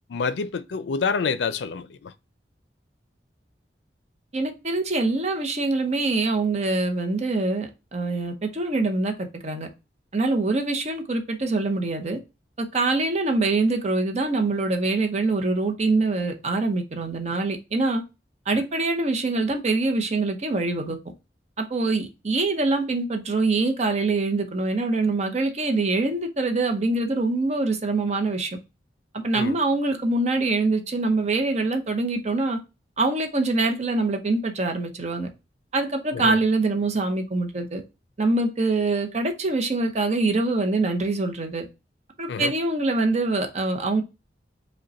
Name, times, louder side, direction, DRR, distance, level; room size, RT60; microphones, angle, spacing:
voice 1, 0.0-2.1 18.5-18.6 29.3-29.6 36.1-36.4 42.3-42.5, left 5 dB, 80° left, 0.4 m, -28 dB
voice 2, 4.3-9.7 10.1-12.2 12.6-18.0 18.5-21.0 21.6-28.5 29.1-32.6 33.0-35.3 35.7-37.8 38.2-41.7 42.2-44.0, right 3 dB, 40° right, 0.7 m, -24 dB
5.2 x 2.2 x 4.0 m
head